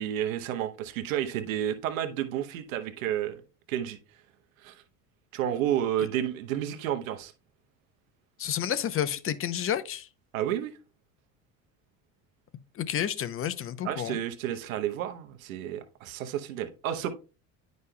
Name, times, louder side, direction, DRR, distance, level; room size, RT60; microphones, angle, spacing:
voice 1, 0.0-3.4 3.7-4.0 4.6-4.7 5.3-7.3 10.3-10.7 13.8-17.1, right 11 dB, 90° right, 0.9 m, -31 dB
voice 2, 8.4-10.1 12.8-14.2, left 10 dB, 35° left, 0.7 m, -30 dB
9.6 x 5.2 x 2.2 m
supercardioid pair, 90°, 39 cm